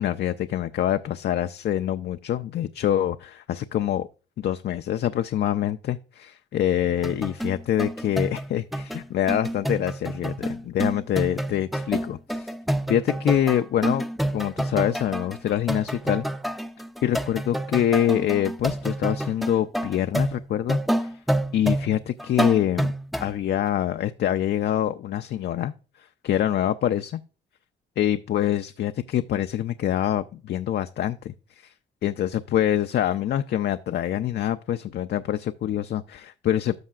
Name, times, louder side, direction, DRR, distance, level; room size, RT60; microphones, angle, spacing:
voice 1, 0.0-4.1 4.4-12.5 12.9-14.0 14.3-16.2 17.0-21.1 21.5-22.9 23.2-25.7 26.2-27.2 28.0-31.3 31.6-31.7 32.0-36.8, left 11 dB, 55° left, 0.4 m, -25 dB
sound 1, 6.9-23.3 23.7-23.8, right 1 dB, ahead, 0.5 m, -28 dB
13.0 x 5.6 x 2.4 m
cardioid pair, 90°, 20 cm